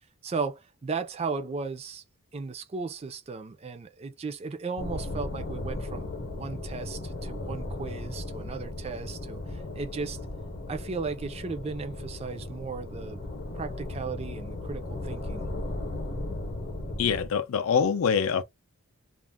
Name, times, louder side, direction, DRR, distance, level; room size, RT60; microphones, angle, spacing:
voice 1, 0.2-2.0 2.3-10.2 10.7-13.2 13.5-15.5, right 4 dB, 30° right, 0.4 m, -36 dB
sound 1, 4.8-17.3, left 2 dB, 50° left, 0.8 m, -36 dB
voice 2, 17.0-18.4, left 6 dB, 75° left, 0.4 m, -24 dB
2.4 x 2.0 x 3.4 m
head